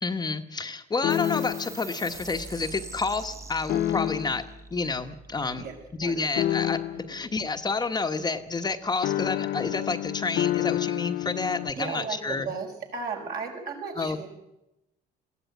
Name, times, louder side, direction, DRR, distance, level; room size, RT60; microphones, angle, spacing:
voice 1, 0.0-4.5 4.7-5.7 6.0-6.8 7.1-12.5 14.0-14.3, left 4 dB, 25° left, 6 dB, 1.2 m, -29 dB
sound 1, 1.0-1.8 3.7-4.5 6.4-7.2 9.0-11.7, left 13 dB, 70° left, 0.7 m, -28 dB
sound 2, 1.1-8.0, right 3 dB, 15° right, 1.1 m, -45 dB
voice 2, 5.5-6.2 7.1-7.2 11.8-14.3, right 5 dB, 60° right, 1 dB, 6.3 m, -35 dB
21.0 x 15.5 x 9.4 m, 0.91 s
cardioid pair, 110°, 17 cm